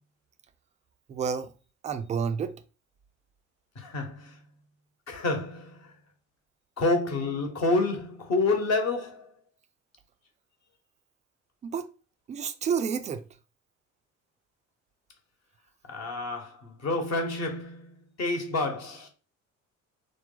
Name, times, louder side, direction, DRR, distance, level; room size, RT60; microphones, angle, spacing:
voice 1, 1.1-1.5 1.8-2.5 11.6-11.9 12.3-13.2, right 6 dB, 20° right, 0.4 m, -30 dB
voice 2, 3.7-4.4 5.1-5.9 6.8-9.3 15.9-19.1, left 3 dB, 40° left, 1.1 m, -29 dB
3.3 x 2.2 x 3.8 m
figure-of-eight pair, 55°, 40 cm